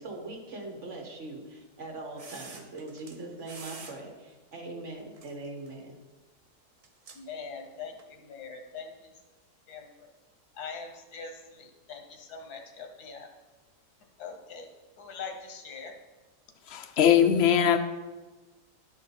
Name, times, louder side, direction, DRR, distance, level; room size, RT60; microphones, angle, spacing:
voice 1, 0.0-6.0, right 2 dB, 50° right, 2 dB, 1.5 m, -41 dB
sound 1, 2.2-3.2 3.4-4.0 5.2-5.7 6.8-7.2 8.0-8.1, right 4 dB, 65° right, 0.3 m, -46 dB
voice 2, 7.1-9.1 9.7-10.1 10.5-13.3 14.2-14.7 15.0-15.9, left 5 dB, 85° left, 5 dB, 1.5 m, -42 dB
voice 3, 16.7-17.8, left 9 dB, 60° left, 8 dB, 0.7 m, -21 dB
11.0 x 4.9 x 4.2 m, 1.2 s
omnidirectional pair, 1.6 m